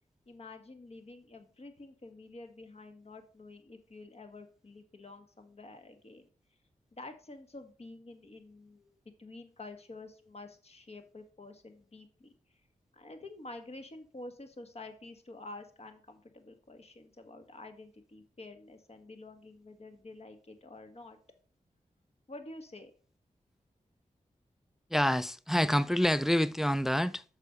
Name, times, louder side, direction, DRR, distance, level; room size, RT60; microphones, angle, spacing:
voice 1, 0.3-6.3 6.9-12.3 12.9-21.2 22.3-22.9, left 2 dB, 45° left, 1.5 m, -49 dB
voice 2, 24.9-27.2, equal, 5° right, 0.4 m, -27 dB
6.6 x 5.4 x 4.9 m
cardioid pair, 40°, 14 cm